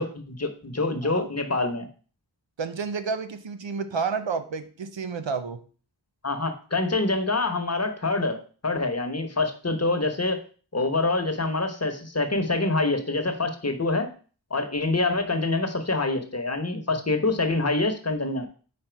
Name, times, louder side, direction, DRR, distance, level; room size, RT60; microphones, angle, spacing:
voice 1, 0.0-1.9 6.2-10.4 10.7-14.1 14.5-18.5, left 2 dB, 35° left, 6 dB, 1.0 m, -26 dB
voice 2, 2.6-5.6, right 5 dB, 85° right, 9 dB, 0.7 m, -30 dB
5.1 x 4.3 x 4.5 m, 0.40 s
wide cardioid pair, 45°, 43 cm